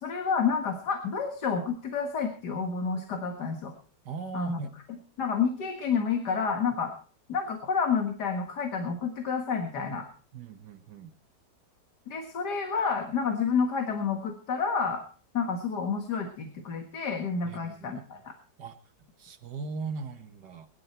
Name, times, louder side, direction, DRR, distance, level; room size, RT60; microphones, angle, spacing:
voice 1, 0.0-3.7 4.3-4.6 5.2-6.9 7.3-10.1 12.1-15.0 15.3-18.2, left 5 dB, 75° left, 4 dB, 2.3 m, -29 dB
voice 2, 4.0-4.8 10.3-11.1 17.4-18.2 18.6-20.7, right 4 dB, 80° right, 7 dB, 1.9 m, -39 dB
22.0 x 11.0 x 4.4 m, 0.41 s
omnidirectional pair, 1.8 m